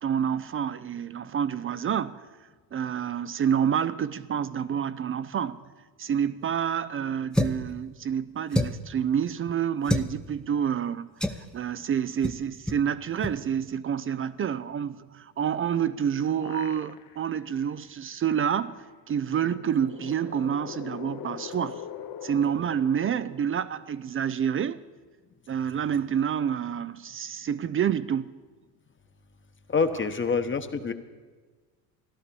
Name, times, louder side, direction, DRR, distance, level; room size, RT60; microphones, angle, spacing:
voice 1, 0.0-2.2 2.7-5.6 6.0-11.1 11.5-21.9 22.2-24.8 25.5-28.4, right 8 dB, 25° right, 0.5 m, -28 dB
sound 1, 7.3-7.7 8.5-8.9 9.8-10.1 11.2-11.5 12.2-12.4 12.7-12.8 13.2-13.4, left 1 dB, ahead, 0.8 m, -27 dB
sound 2, 15.9-17.4 17.8-17.9 19.2-24.0, left 9 dB, 45° left, 1.1 m, -42 dB
voice 2, 29.7-30.9, left 5 dB, 25° left, 1.2 m, -26 dB
14.5 x 12.0 x 6.9 m
supercardioid pair, 85°, 50 cm